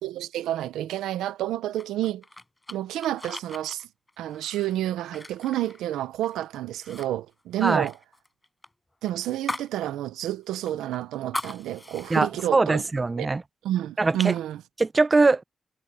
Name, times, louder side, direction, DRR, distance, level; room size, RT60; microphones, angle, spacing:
voice 1, 0.0-2.2 2.7-3.9 4.2-8.0 9.0-12.8 13.2-13.3 13.6-14.6, right 13 dB, 90° right, 1.2 m, -29 dB
sound 1, 1.8-6.4 6.7-7.1 7.3-9.8 10.1-10.2 10.7-12.2, left 2 dB, 25° left, 6.9 m, -39 dB
voice 2, 12.1-13.4 14.0-14.3 14.8-15.4, right 3 dB, 35° right, 0.8 m, -22 dB
supercardioid pair, 40°, 0 cm